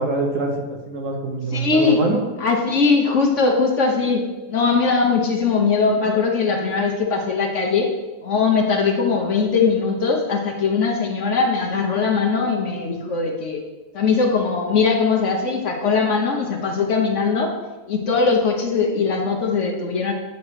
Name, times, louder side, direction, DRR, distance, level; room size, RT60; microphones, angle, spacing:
voice 1, 0.0-2.2, right 3 dB, 55° right, 1 dB, 1.4 m, -24 dB
voice 2, 1.5-2.0 2.4-7.9 8.2-13.6 13.9-17.5 17.9-20.1, left 4 dB, 55° left, 2 dB, 1.0 m, -20 dB
8.5 x 3.1 x 6.2 m, 1.2 s
omnidirectional pair, 1.6 m